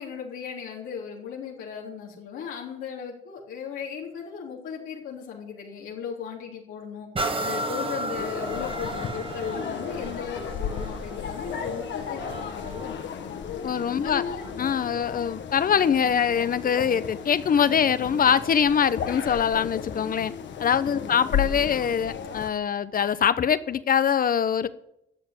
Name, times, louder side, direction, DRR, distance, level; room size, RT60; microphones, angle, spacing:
voice 1, 0.0-13.4 13.7-14.4 20.9-21.1, left 6 dB, 90° left, -3 dB, 3.7 m, -37 dB
sound 1, 7.1-14.8 15.3-15.4, right 2 dB, 25° right, 1.6 m, -35 dB
sound 2, 8.1-22.5, left 7 dB, 65° left, 1.4 m, -34 dB
voice 2, 13.6-14.2 14.6-20.3 20.6-24.7, left 8 dB, 45° left, 15 dB, 0.9 m, -23 dB
12.5 x 7.4 x 9.5 m, 0.80 s
cardioid pair, 90°, 20 cm